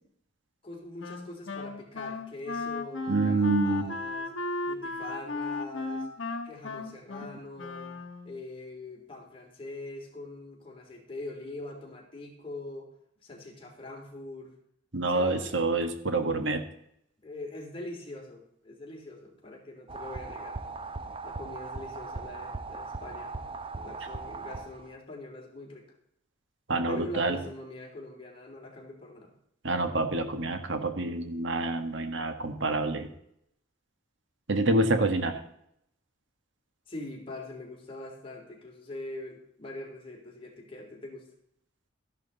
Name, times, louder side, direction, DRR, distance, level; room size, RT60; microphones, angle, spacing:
voice 1, 0.6-4.3 4.6-6.1 6.4-8.0 8.2-12.9 13.2-14.5 15.1-15.7 16.0-16.2 17.2-20.6 21.2-23.4 23.7-25.9 26.9-29.3 36.9-41.3, left 2 dB, 30° left, 0 dB, 3.3 m, -43 dB
Wind instrument woodwind instrument, 1.0-8.4, left 3 dB, 80° left, 1.3 m, -35 dB
voice 2, 3.1-4.0 14.9-16.6 26.7-27.4 29.6-33.1 34.5-35.4, right 2 dB, 70° right, 7 dB, 1.6 m, -27 dB
sound 1, 19.9-25.0, right 3 dB, 30° right, 0.7 m, -39 dB
13.5 x 11.5 x 4.1 m, 0.73 s
head